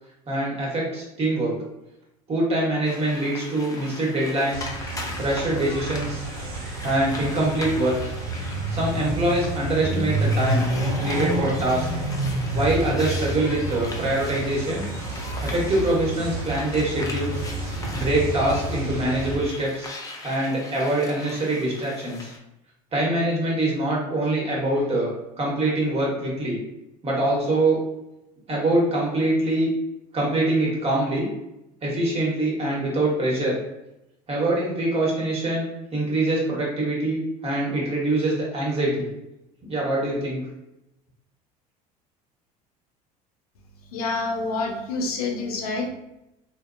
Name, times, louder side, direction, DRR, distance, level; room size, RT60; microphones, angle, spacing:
voice 1, 0.3-1.5 2.3-4.7 5.2-6.3 6.8-8.0 8.7-10.6 11.0-11.9 12.5-14.9 15.4-17.4 17.9-19.9 20.2-22.3 22.9-25.1 25.4-26.6 27.0-27.8 28.5-29.7 30.1-31.3 31.8-33.5 34.3-39.0 39.7-40.4, right 1 dB, 35° right, -3 dB, 1.2 m, -24 dB
sound 1, 2.8-22.4, left 2 dB, 20° left, 0.6 m, -39 dB
sound 2, 4.5-19.4, right 2 dB, 80° right, 0.5 m, -29 dB
voice 2, 43.9-45.9, left 3 dB, 90° left, 2 dB, 0.5 m, -27 dB
2.7 x 2.0 x 2.5 m, 0.90 s
hypercardioid pair, 75°, 19 cm